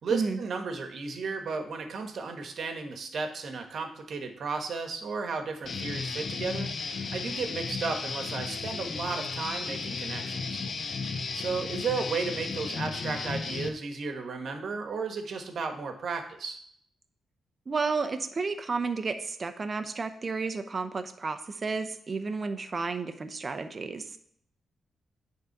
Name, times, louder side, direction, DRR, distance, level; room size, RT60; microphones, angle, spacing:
voice 1, 0.0-10.6 11.3-16.6, right 4 dB, 65° right, 5 dB, 1.3 m, -34 dB
Guitar, 5.6-13.7, left 4 dB, 55° left, 0.8 m, -34 dB
voice 2, 17.7-24.2, right 4 dB, 40° right, 9 dB, 0.8 m, -32 dB
9.3 x 3.8 x 5.9 m, 0.66 s
cardioid pair, 85°, 0 cm